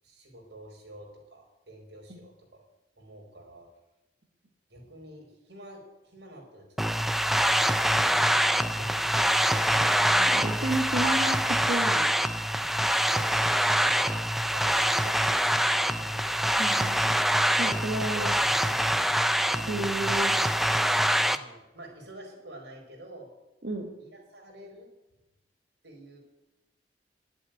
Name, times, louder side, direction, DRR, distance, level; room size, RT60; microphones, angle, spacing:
voice 1, 0.0-2.6 3.0-3.7 4.7-7.4 8.0-10.1 13.0-16.4 17.9-19.0 19.5-20.7 21.2-23.3 24.0-24.9 25.8-26.2, right 1 dB, 80° right, 0 dB, 4.9 m, -47 dB
sound 1, 6.8-21.4, equal, ahead, 0.4 m, -25 dB
voice 2, 10.0-12.1 16.6-17.1 17.6-18.3 19.7-20.4 23.6-23.9, right 2 dB, 60° right, -1 dB, 1.7 m, -32 dB
11.5 x 8.1 x 9.2 m, 0.98 s
head